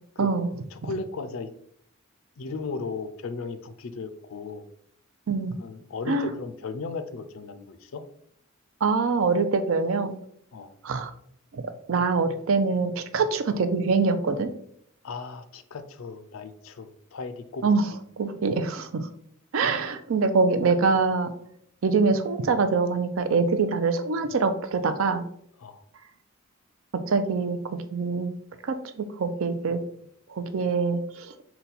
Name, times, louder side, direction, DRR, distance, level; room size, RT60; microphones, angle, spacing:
voice 1, 0.2-0.5 5.3-5.5 6.1-6.3 8.8-10.1 10.8-11.1 11.5-11.6 11.9-14.5 17.6-17.9 18.2-19.1 19.5-21.3 21.8-25.2 27.1-28.3 28.7-29.8 30.3-31.3, right 4 dB, 70° right, 9 dB, 0.5 m, -24 dB
voice 2, 0.7-1.5 2.4-4.6 5.6-8.0 10.5-10.7 15.0-17.8 25.6-25.8, left 4 dB, 75° left, 10 dB, 0.4 m, -36 dB
4.1 x 2.2 x 4.0 m, 0.67 s
head